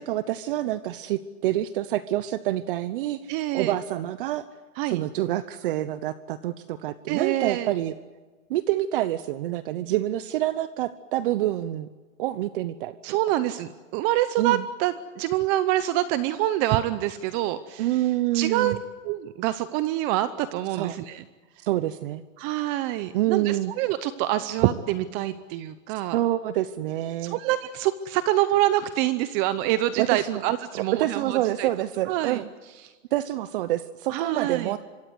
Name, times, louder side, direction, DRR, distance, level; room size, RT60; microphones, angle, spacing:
voice 1, 0.0-4.5 4.9-7.9 8.5-11.9 12.2-13.0 14.4-14.6 17.8-18.8 20.8-21.0 21.6-22.2 23.1-23.7 26.1-27.4 30.0-30.4 31.0-32.5 33.1-34.8, right 14 dB, 45° right, 14 dB, 1.0 m, -27 dB
voice 2, 3.3-3.7 4.8-5.0 7.1-7.7 13.0-18.0 18.3-18.8 19.0-21.2 22.4-26.2 27.2-31.7 32.1-32.4 32.8-32.9 34.1-34.8, right 14 dB, 25° right, 14 dB, 0.7 m, -26 dB
25.5 x 23.5 x 8.0 m, 1.3 s
hypercardioid pair, 155°, 39 cm